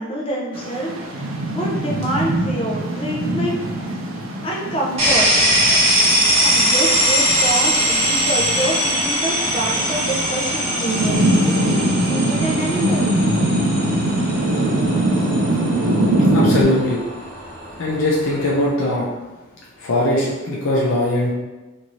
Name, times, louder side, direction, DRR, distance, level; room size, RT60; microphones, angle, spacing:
voice 1, 0.0-3.9 4.4-5.3 6.4-13.1, right 1 dB, 30° left, -3 dB, 0.6 m, -26 dB
sound 1, 0.5-16.6, right 1 dB, 85° right, 0.5 m, -22 dB
sound 2, 5.0-18.7, equal, 30° right, 1.0 m, -21 dB
voice 2, 16.3-17.0 17.8-19.0 19.8-21.3, left 1 dB, 75° left, -5 dB, 0.5 m, -20 dB
2.6 x 2.6 x 3.0 m, 1.2 s
head